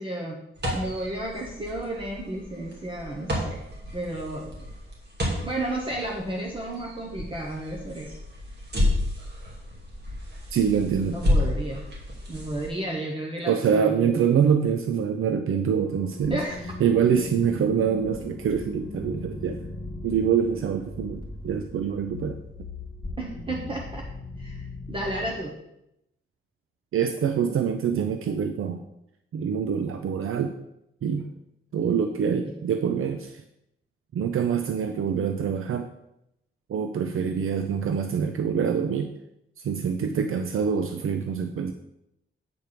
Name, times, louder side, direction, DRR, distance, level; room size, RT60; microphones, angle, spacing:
voice 1, 0.0-3.6 3.9-4.6 5.4-8.2 11.1-11.9 12.3-14.4 16.3-16.7 23.2-24.1 24.4-24.6 24.9-25.6 32.4-32.6, right 1 dB, 25° right, -1 dB, 1.1 m, -32 dB
sound 1, 0.6-12.7, left 1 dB, 50° right, 2.6 m, -31 dB
voice 2, 10.5-11.2 13.5-16.4 16.8-19.6 20.0-22.4 26.9-28.8 29.3-30.5 31.0-31.3 31.7-33.4 34.1-35.9 36.7-39.1 39.6-41.7, right 7 dB, 75° right, 7 dB, 0.6 m, -25 dB
sound 2, 15.7-25.3, left 2 dB, 20° left, 2.7 m, -38 dB
8.7 x 4.5 x 6.7 m, 0.84 s
wide cardioid pair, 170°, 21 cm